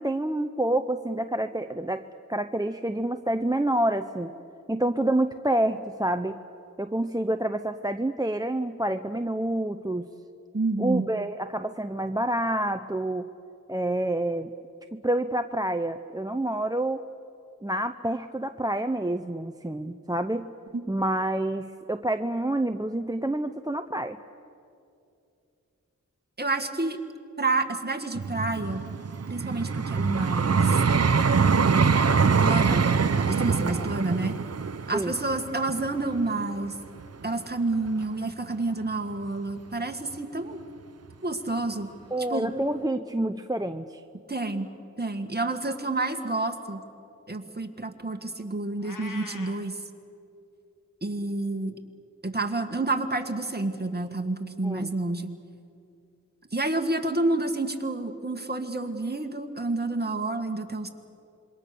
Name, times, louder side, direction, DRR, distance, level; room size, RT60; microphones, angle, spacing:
voice 1, 0.0-2.0 2.3-4.3 4.7-6.4 6.8-10.1 10.8-13.3 13.7-14.5 14.9-17.0 17.6-20.5 20.9-24.2 33.6-33.9 34.9-35.1 42.1-44.0 54.6-54.9, right 1 dB, 10° right, 7 dB, 0.7 m, -28 dB
voice 2, 10.5-11.1 20.7-20.8 26.4-27.0 27.4-28.8 29.3-30.8 32.4-32.9 33.2-34.3 34.9-36.7 37.2-40.6 41.2-41.9 42.3-42.5 44.3-44.7 45.0-46.8 47.3-49.8 51.0-51.7 52.2-55.3 56.5-60.9, right 2 dB, 30° right, 5 dB, 1.8 m, -29 dB
Vehicle, 28.1-37.2 37.8-38.0, right 5 dB, 50° right, 0.8 m, -24 dB
Meow, 48.8-49.6, left 3 dB, 85° left, 2.0 m, -42 dB
27.0 x 23.0 x 6.9 m, 2.6 s
wide cardioid pair, 65°, 31 cm